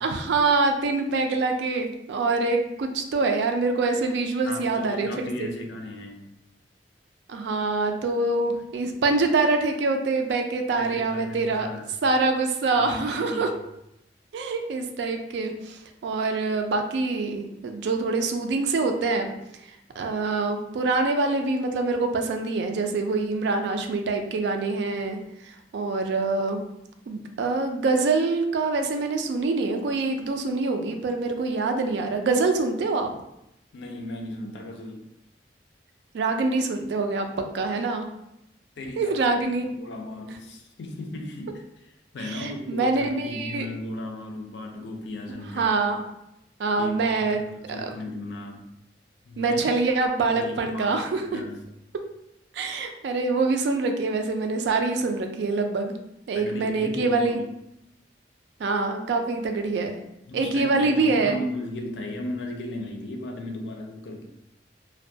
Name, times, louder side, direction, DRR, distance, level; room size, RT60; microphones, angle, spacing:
voice 1, 0.0-5.1 7.3-11.7 12.0-13.5 14.3-19.3 20.0-26.6 27.1-33.1 36.1-37.3 37.5-38.1 39.0-39.7 42.2-43.7 45.5-46.0 46.6-47.4 47.8-47.9 49.4-51.4 52.5-55.9 56.3-57.4 58.6-60.0 60.3-61.4, right 3 dB, 75° right, 5 dB, 0.3 m, -25 dB
voice 2, 4.5-6.3 10.7-11.9 12.7-13.6 33.7-35.1 38.8-39.2 39.7-45.7 46.8-48.7 49.3-49.7 50.3-51.6 56.3-57.4 60.3-64.2, left 1 dB, 80° left, 2 dB, 0.4 m, -36 dB
2.2 x 2.1 x 2.6 m, 0.84 s
head